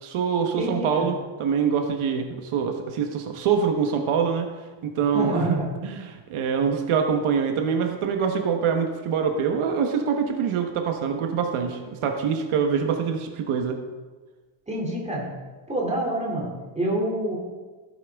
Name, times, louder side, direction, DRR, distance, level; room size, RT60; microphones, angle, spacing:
voice 1, 0.0-4.5 4.8-5.5 5.8-13.8, right 6 dB, 80° right, 4 dB, 1.2 m, -25 dB
voice 2, 0.6-1.1 5.1-5.7 14.7-15.3 15.7-17.4, right 1 dB, 15° right, -3 dB, 2.6 m, -27 dB
14.5 x 9.2 x 3.5 m, 1.3 s
cardioid pair, 165°, 49 cm